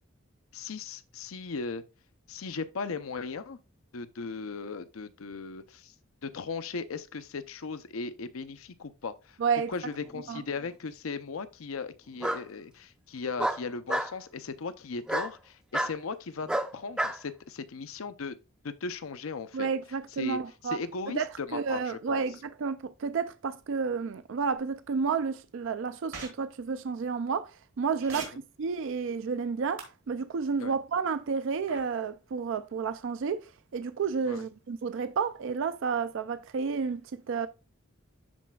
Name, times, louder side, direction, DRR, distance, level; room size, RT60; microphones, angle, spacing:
voice 1, 0.5-1.8 2.3-3.6 3.9-5.9 6.2-9.4 9.7-18.4 18.6-19.7 20.2-20.4 20.6-22.2 28.1-28.2 30.6-30.7 34.3-34.5, left 4 dB, 85° left, 0.6 m, -37 dB
voice 2, 9.4-9.7 10.3-10.4 19.5-20.8 21.1-37.5, right 5 dB, 65° right, 0.4 m, -31 dB
Bark, 10.0-10.7 12.2-12.4 13.4-14.1 15.1-15.3 15.7-15.9 16.5-17.2, right 1 dB, 5° right, 0.5 m, -30 dB
sound 1, 26.1-26.3 28.0-28.2 29.8-29.9 31.7-31.8, right 5 dB, 85° right, 2.9 m, -38 dB
12.5 x 4.2 x 2.3 m
head